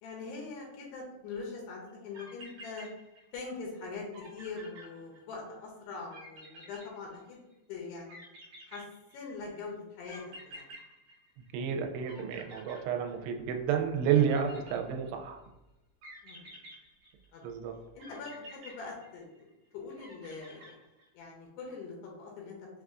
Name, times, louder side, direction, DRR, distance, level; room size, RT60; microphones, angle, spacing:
voice 1, 0.0-2.9 3.3-7.4 7.7-8.2 8.7-8.8 9.1-10.7 13.1-13.3 16.2-16.6 17.3-17.4 17.9-19.5 19.7-20.8 21.1-22.7, left 4 dB, 80° left, -2 dB, 2.7 m, -43 dB
sound 1, 1.9-2.0 2.1-3.5 3.8-3.9 4.1-5.5 6.1-7.5 8.1-9.4 10.1-11.7 12.0-13.5 14.0-15.3 16.0-17.4 18.0-19.5 20.0-21.2, equal, 60° right, 2.1 m, -51 dB
voice 2, 11.5-15.4 17.4-17.7, right 8 dB, 85° right, 4 dB, 2.6 m, -30 dB
6.4 x 2.3 x 2.4 m, 0.96 s
omnidirectional pair, 4.7 m